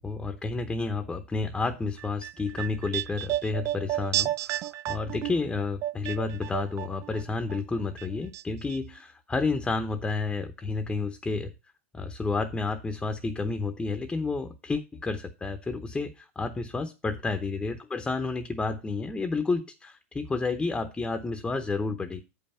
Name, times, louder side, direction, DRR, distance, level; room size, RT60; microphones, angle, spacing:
voice 1, 0.0-11.5 11.9-22.2, left 3 dB, 10° left, 8 dB, 0.9 m, -30 dB
sound 1, 2.0-7.2 7.5-8.4 8.7-8.8, right 14 dB, 40° right, 0.4 m, -32 dB
8.3 x 5.6 x 5.6 m, 0.27 s
hypercardioid pair, 120°, 7 cm